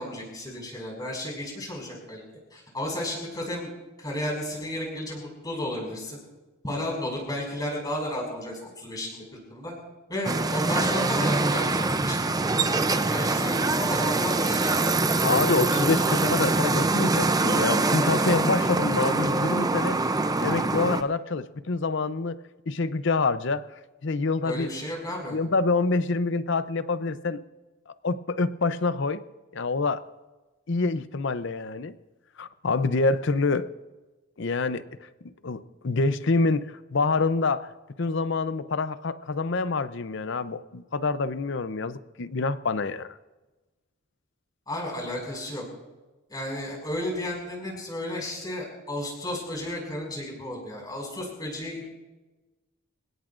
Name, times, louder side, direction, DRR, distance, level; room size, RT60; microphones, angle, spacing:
voice 1, 0.0-2.2 2.5-3.7 4.0-6.2 6.6-9.2 9.5-9.7 10.1-12.2 12.4-15.3 24.4-25.4 44.7-45.6 46.3-51.9, left 1 dB, 20° left, -1 dB, 5.9 m, -33 dB
sound 1, 10.2-21.0, right 3 dB, 15° right, 0.5 m, -24 dB
voice 2, 15.2-20.0 20.4-22.4 22.7-23.6 24.0-24.7 25.3-27.4 27.9-29.2 29.5-30.0 30.7-31.9 32.4-33.7 34.4-34.9 35.2-37.7 38.0-43.1, left 3 dB, 55° left, 13 dB, 0.6 m, -26 dB
27.0 x 17.0 x 2.6 m, 1.1 s
head